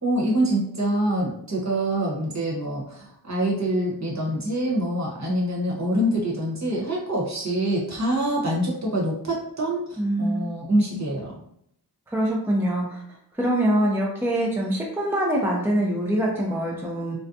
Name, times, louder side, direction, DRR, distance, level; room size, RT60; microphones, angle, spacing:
voice 1, 0.0-11.4, right 1 dB, 40° right, -3 dB, 1.0 m, -25 dB
voice 2, 10.0-10.5 12.1-13.0 13.3-17.2, right 1 dB, 5° right, -2 dB, 0.5 m, -24 dB
2.5 x 2.2 x 2.6 m, 0.70 s
cardioid pair, 45°, 41 cm